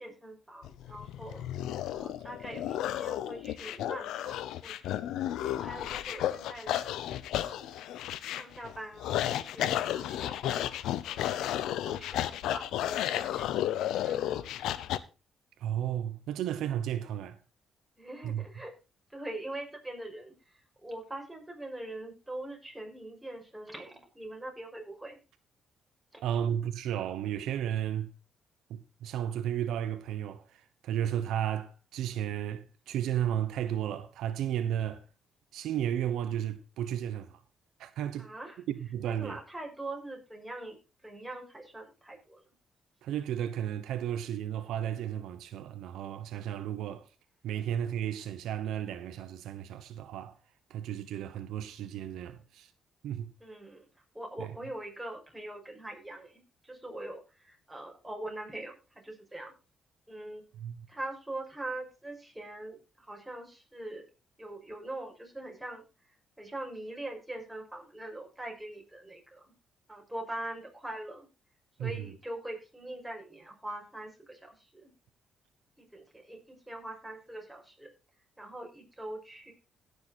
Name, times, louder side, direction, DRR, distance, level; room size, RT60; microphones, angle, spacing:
voice 1, 0.0-1.5 1.9-5.1 5.5-6.8 7.3-7.8 8.4-11.5 11.8-13.7 14.0-14.5 18.0-18.7 19.1-25.2 26.1-26.2 38.2-38.6 39.0-40.8 41.0-42.4 53.4-53.9 54.1-59.5 60.1-60.5 60.9-64.0 64.4-65.9 66.4-69.5 69.9-71.3 71.8-74.9 75.8-77.9 78.4-79.5, right 1 dB, 5° right, 5.9 m, -43 dB
sound 1, 0.6-15.0, left 12 dB, 85° left, 0.7 m, -33 dB
voice 2, 15.6-17.4 18.2-18.4 26.2-28.1 28.7-35.0 35.5-37.4 37.8-38.3 38.7-39.4 43.0-47.1 47.4-50.3 50.7-52.7 53.0-53.3 54.4-54.5 60.6-60.9 71.8-72.1, right 10 dB, 85° right, 1.0 m, -33 dB
16.5 x 6.9 x 4.2 m
cardioid pair, 90°, 0 cm